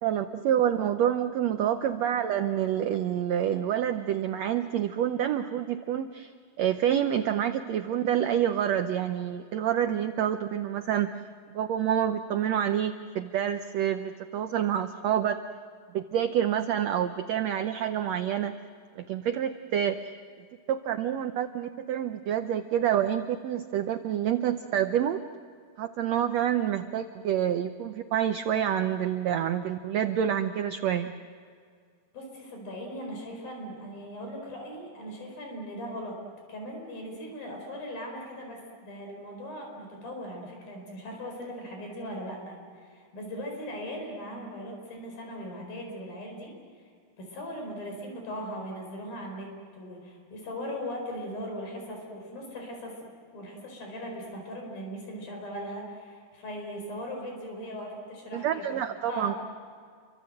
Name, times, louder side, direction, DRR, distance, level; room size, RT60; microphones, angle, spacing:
voice 1, 0.0-6.3 6.6-11.1 11.5-15.4 15.9-18.5 18.9-20.0 20.7-25.2 25.8-31.1 58.3-59.3, right 10 dB, 90° right, 8 dB, 1.5 m, -27 dB
voice 2, 32.1-36.2 36.5-46.5 47.2-58.7 59.1-59.4, equal, 75° left, 2 dB, 6.5 m, -39 dB
29.0 x 24.5 x 7.8 m, 2.1 s
omnidirectional pair, 4.2 m